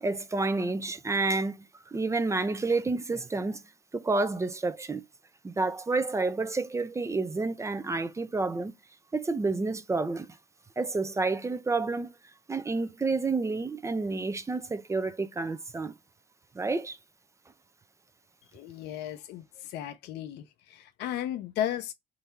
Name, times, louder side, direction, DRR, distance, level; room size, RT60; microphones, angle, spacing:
voice 1, 0.0-3.6 3.9-5.0 5.4-8.7 9.1-10.4 10.8-12.2 12.5-16.0 16.5-17.0, right 3 dB, 15° right, 0.5 m, -29 dB
voice 2, 18.5-19.4 19.7-20.4 21.0-21.9, left 11 dB, 80° left, 0.7 m, -34 dB
3.8 x 2.7 x 4.4 m
cardioid pair, 110°, 17 cm